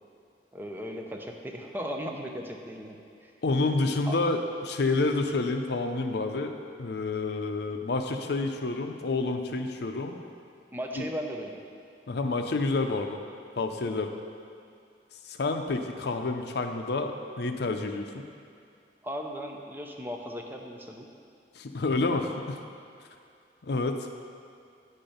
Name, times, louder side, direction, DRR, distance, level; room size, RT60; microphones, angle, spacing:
voice 1, 0.5-3.3 4.1-4.2 10.7-11.6 19.0-21.1 22.0-22.2, equal, 10° right, 1 dB, 0.6 m, -37 dB
voice 2, 3.4-10.2 11.0-11.1 12.1-13.2 13.6-14.1 15.3-18.3 21.6-22.6 23.6-24.1, left 3 dB, 65° left, 5 dB, 0.6 m, -29 dB
9.5 x 4.4 x 5.1 m, 2.4 s
head